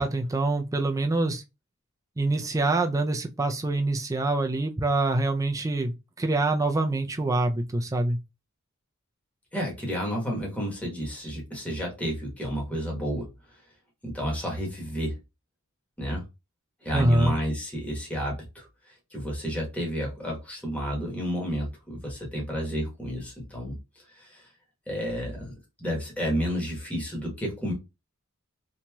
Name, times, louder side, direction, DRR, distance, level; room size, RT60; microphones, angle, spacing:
voice 1, 0.0-1.4 2.2-8.2 16.9-17.4, right 2 dB, 15° right, 0.4 m, -25 dB
voice 2, 9.5-13.3 14.0-15.1 16.0-16.2 16.8-23.8 24.1-24.5 24.9-25.5 25.8-27.7, equal, 5° left, 1.1 m, -31 dB
3.0 x 2.7 x 2.2 m
head